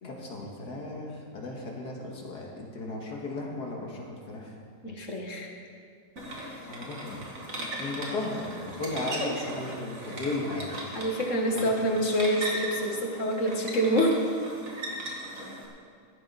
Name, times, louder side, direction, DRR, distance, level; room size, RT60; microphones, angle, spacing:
voice 1, 0.0-4.5 6.7-7.5 7.8-10.8 11.5-11.7, left 2 dB, 70° left, -1 dB, 2.4 m, -35 dB
voice 2, 4.8-5.5 9.2-9.3 10.9-14.2, equal, 50° left, 1 dB, 1.8 m, -27 dB
sound 1, 6.2-15.6, right 1 dB, 50° right, 2.4 m, -38 dB
15.5 x 12.5 x 4.1 m, 2.1 s
omnidirectional pair, 1.8 m